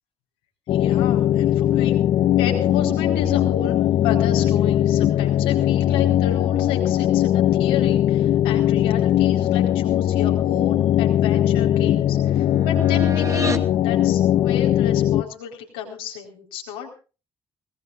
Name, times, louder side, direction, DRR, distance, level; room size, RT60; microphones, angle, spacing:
voice 1, 0.7-1.9 2.4-3.8 4.0-16.9, left 8 dB, 75° left, 1 dB, 4.5 m, -32 dB
sound 1, 0.7-15.2, left 12 dB, 55° left, 0.8 m, -19 dB
sound 2, 10.6-13.7, right 3 dB, 25° right, 2.2 m, -34 dB
24.0 x 20.5 x 2.6 m, 0.35 s
figure-of-eight pair, 45°, 12 cm